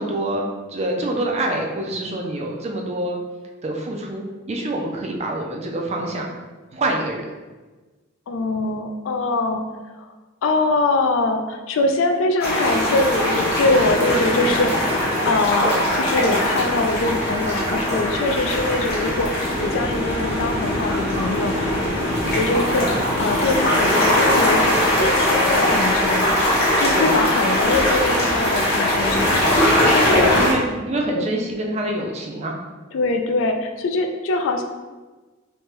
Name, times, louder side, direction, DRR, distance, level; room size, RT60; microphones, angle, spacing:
voice 1, 0.0-3.2 3.6-6.3 6.7-7.3 26.9-27.1 30.1-32.6, right 1 dB, 30° right, 1 dB, 0.4 m, -26 dB
voice 2, 6.0-6.3 8.3-9.6 10.0-10.1 10.4-14.7 15.0-21.6 22.3-30.4 31.0-31.3 32.9-34.6, left 2 dB, 65° left, 5 dB, 0.3 m, -23 dB
sound 1, 12.4-30.5, left 1 dB, 50° left, 0.8 m, -20 dB
3.2 x 2.2 x 2.9 m, 1.3 s
head